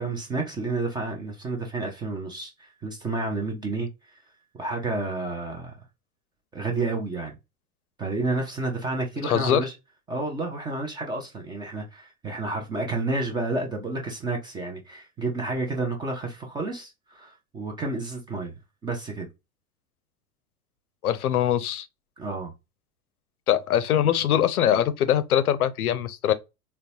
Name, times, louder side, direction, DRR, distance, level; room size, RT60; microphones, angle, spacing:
voice 1, 0.0-3.9 4.5-5.7 6.5-7.4 8.0-9.7 10.1-18.5 18.8-19.3 22.2-22.5, right 3 dB, 10° right, 0.4 m, -30 dB
voice 2, 9.2-9.6 21.0-21.9 23.5-26.3, left 10 dB, 75° left, 0.6 m, -22 dB
3.9 x 2.2 x 2.6 m
figure-of-eight pair, 90°, 45 cm